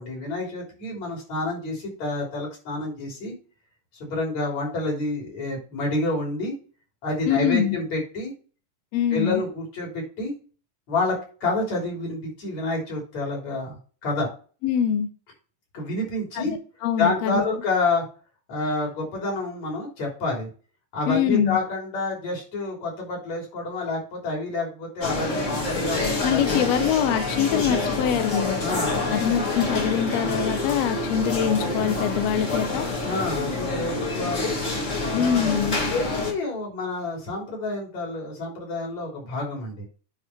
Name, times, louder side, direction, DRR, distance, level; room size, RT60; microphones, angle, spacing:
voice 1, 0.0-3.3 3.9-6.5 7.0-8.3 9.1-10.3 10.9-14.3 15.7-16.5 17.0-18.1 18.5-20.5 20.9-26.6 28.6-29.4 33.0-34.6 35.1-39.9, left 2 dB, 55° left, -1 dB, 4.7 m, -28 dB
voice 2, 7.3-7.8 8.9-9.4 14.6-15.1 16.4-17.4 21.1-21.6 26.2-28.6 29.1-32.9 35.1-35.8, left 9 dB, 80° left, 9 dB, 1.5 m, -24 dB
sound 1, 25.0-36.3, left 2 dB, 35° left, 1.2 m, -27 dB
9.6 x 5.1 x 4.5 m, 0.37 s
omnidirectional pair, 3.9 m